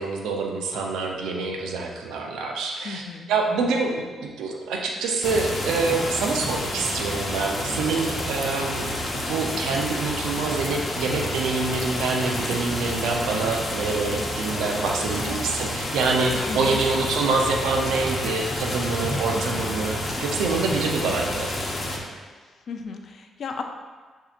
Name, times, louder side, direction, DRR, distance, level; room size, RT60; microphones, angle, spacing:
voice 1, 0.0-3.0 3.3-21.5, right 4 dB, 90° right, 1 dB, 0.5 m, -26 dB
voice 2, 2.8-3.8 15.1-15.6 16.3-16.8 17.2-17.4 19.3-19.7 21.0-21.4 22.2-22.3 22.7-23.6, left 5 dB, 60° left, 4 dB, 0.4 m, -36 dB
sound 1, 5.2-22.0, left 1 dB, 35° left, 0.8 m, -29 dB
6.8 x 2.7 x 2.5 m, 1.4 s
cardioid pair, 70°, 0 cm